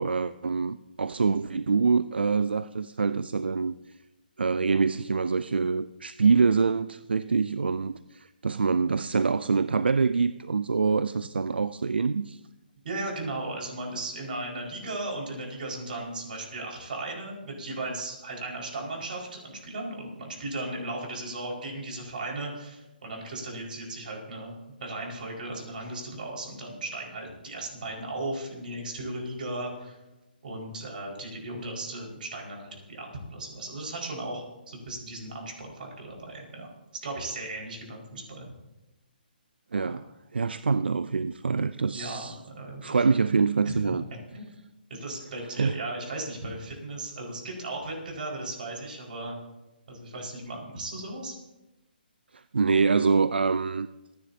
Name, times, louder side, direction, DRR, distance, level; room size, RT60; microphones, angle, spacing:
voice 1, 0.0-3.8 4.4-12.4 39.7-40.0 40.3-42.4 42.8-44.0 45.6-45.7 52.3-53.9, right 4 dB, 85° right, 0.4 m, -25 dB
voice 2, 12.8-24.5 24.8-30.0 30.4-36.7 37.0-38.6 39.7-39.9 41.9-43.0 43.6-44.0 44.3-44.5 44.9-49.4 49.9-51.4, right 2 dB, 60° right, 5.2 m, -36 dB
27.0 x 10.5 x 2.9 m
hypercardioid pair, 150°, 5 cm